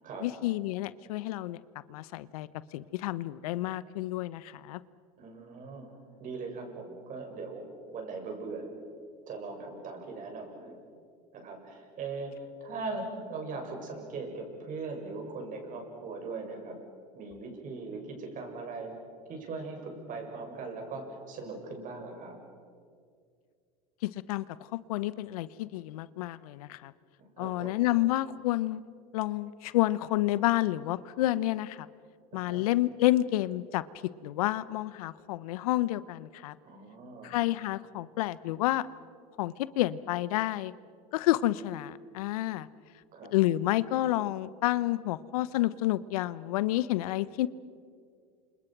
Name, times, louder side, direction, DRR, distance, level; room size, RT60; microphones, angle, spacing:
voice 1, 0.2-1.6 1.9-4.8 24.0-24.4 24.9-26.9 27.4-28.8 29.1-31.9 32.3-33.8 34.2-36.6 37.2-38.9 39.4-40.7 41.1-42.7 43.3-47.5, left 16 dB, 70° left, 18 dB, 0.9 m, -29 dB
voice 2, 5.2-7.6 7.9-8.7 9.3-10.8 11.3-16.8 17.1-18.9 19.3-22.4 27.2-27.9 32.3-32.7 36.6-37.4 43.1-43.3, right 3 dB, 45° right, 3 dB, 7.2 m, -40 dB
29.5 x 27.0 x 6.0 m, 2.2 s
hypercardioid pair, 90°, 19 cm